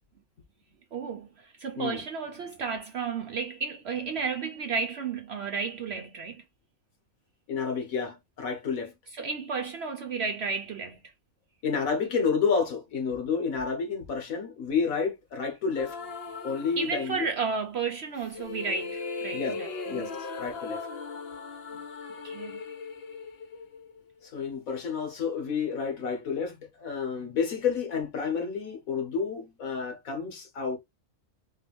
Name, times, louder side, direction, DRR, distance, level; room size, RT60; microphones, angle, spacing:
voice 1, 0.9-6.4 9.1-11.0 16.8-20.1 22.2-22.6, right 5 dB, 60° right, 0.8 m, -33 dB
voice 2, 7.5-8.9 11.6-16.0 16.4-17.3 19.3-19.6 19.9-20.1 20.4-20.8 24.2-30.8, left 5 dB, 90° left, 1.7 m, -30 dB
sound 1, 15.7-17.4 18.2-24.3, left 4 dB, 55° left, 0.9 m, -38 dB
4.5 x 2.6 x 3.4 m
omnidirectional pair, 1.4 m